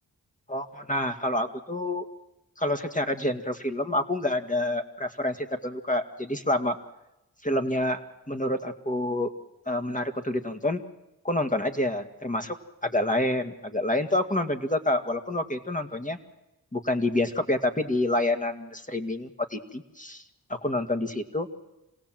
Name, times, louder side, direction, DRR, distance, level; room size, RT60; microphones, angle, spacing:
voice 1, 0.5-2.1 2.6-6.8 7.4-9.3 9.7-10.8 11.2-12.5 12.8-16.2 16.7-20.2 20.5-21.5, left 1 dB, 20° left, 7 dB, 2.0 m, -28 dB
27.0 x 17.5 x 7.7 m, 0.94 s
cardioid pair, 40°, 38 cm